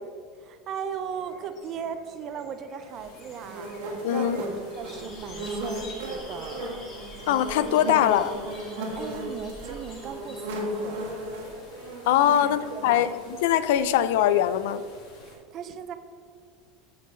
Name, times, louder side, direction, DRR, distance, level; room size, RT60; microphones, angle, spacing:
voice 1, 0.4-3.7 4.1-4.5 4.8-6.8 7.1-7.3 8.9-11.1 12.2-13.1 15.2-16.0, right 7 dB, 30° right, 10 dB, 0.4 m, -37 dB
sound 1, 0.9-12.0, left 2 dB, 25° left, 1.0 m, -48 dB
sound 2, 2.9-15.4, left 1 dB, 50° left, 1.8 m, -50 dB
sound 3, 3.4-13.4, right 1 dB, 85° right, 1.7 m, -36 dB
voice 2, 4.0-4.4 7.3-8.3 12.1-13.1 13.4-14.8, left 11 dB, 70° left, 14 dB, 0.3 m, -22 dB
7.4 x 3.8 x 5.8 m, 2.1 s
supercardioid pair, 170°, 0 cm